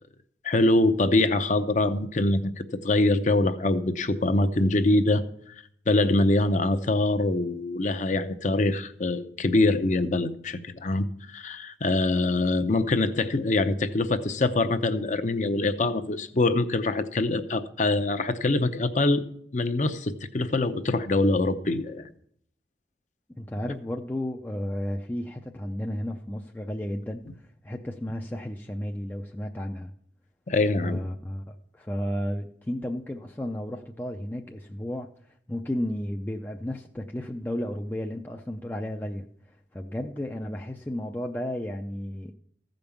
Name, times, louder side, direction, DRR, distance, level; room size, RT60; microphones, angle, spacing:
voice 1, 0.4-2.5 2.8-5.2 5.9-19.2 19.5-22.1 30.5-31.0, left 2 dB, 45° left, 10 dB, 0.7 m, -24 dB
voice 2, 23.4-29.9 30.8-35.1 35.5-42.3, left 1 dB, 10° left, 1 dB, 0.5 m, -33 dB
15.0 x 5.3 x 7.1 m, 0.67 s
head